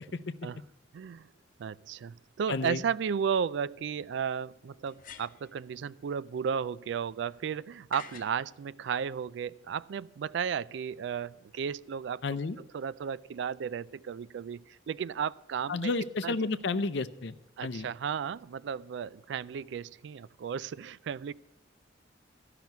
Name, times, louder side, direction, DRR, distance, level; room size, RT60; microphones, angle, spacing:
voice 1, 0.9-1.3 1.6-12.2 12.7-15.9 16.2-16.3 17.6-21.3, right 7 dB, 65° right, 19 dB, 0.3 m, -34 dB
voice 2, 2.5-2.8 12.2-12.6 15.7-17.3 17.6-17.9, left 3 dB, 65° left, 13 dB, 0.6 m, -31 dB
sound 1, 3.0-3.1 4.8-5.5 7.9-8.4, left 6 dB, 45° left, 1.0 m, -47 dB
12.5 x 5.9 x 9.3 m, 0.95 s
head